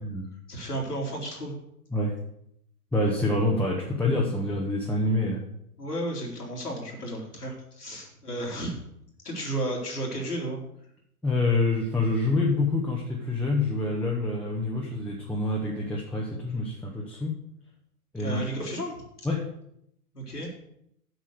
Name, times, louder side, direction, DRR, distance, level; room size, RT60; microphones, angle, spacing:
voice 1, 0.5-1.5 5.8-8.8 9.2-10.6 18.2-19.0 20.1-20.5, right 1 dB, 80° left, -1 dB, 3.4 m, -33 dB
voice 2, 2.9-5.4 11.2-17.4 18.1-18.4 19.2-19.5, left 2 dB, 5° left, -4 dB, 1.2 m, -26 dB
8.0 x 6.2 x 8.0 m, 0.74 s
figure-of-eight pair, 105°, 46 cm